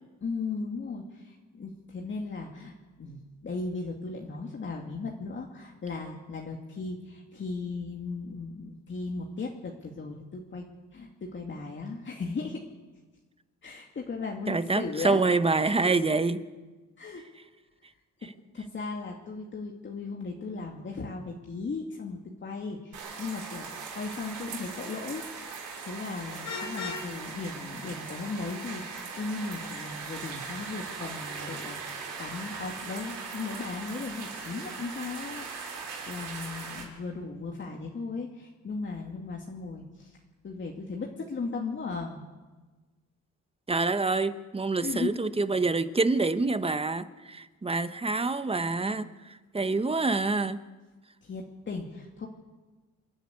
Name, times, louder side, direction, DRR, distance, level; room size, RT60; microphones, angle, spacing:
voice 1, 0.2-2.7 3.0-10.7 10.9-12.6 13.6-15.3 15.8-16.0 17.0-17.2 18.2-25.2 25.9-40.1 40.4-42.2 44.8-45.1 51.2-52.3, left 4 dB, 40° left, 0 dB, 2.3 m, -37 dB
voice 2, 14.5-16.4 43.7-50.6, right 3 dB, 20° right, 12 dB, 1.0 m, -27 dB
sound 1, 22.9-36.8, right 5 dB, 80° right, 5.6 m, -40 dB
Vehicle horn car horn honking, 26.4-27.1, left 5 dB, 65° left, 6.3 m, -36 dB
27.5 x 10.5 x 9.7 m, 1.3 s
cardioid pair, 90°, 30 cm